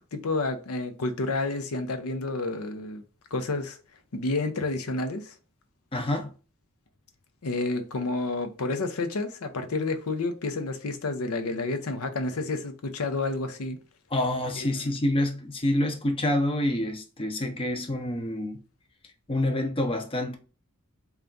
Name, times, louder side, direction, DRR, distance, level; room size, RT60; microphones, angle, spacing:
voice 1, 0.1-3.0 3.3-3.8 4.1-5.3 7.4-13.8 14.6-15.0, left 3 dB, 85° left, 0.6 m, -30 dB
voice 2, 5.9-6.3 14.1-18.6 19.3-20.4, left 1 dB, 25° left, 0.6 m, -27 dB
3.4 x 2.3 x 3.8 m
head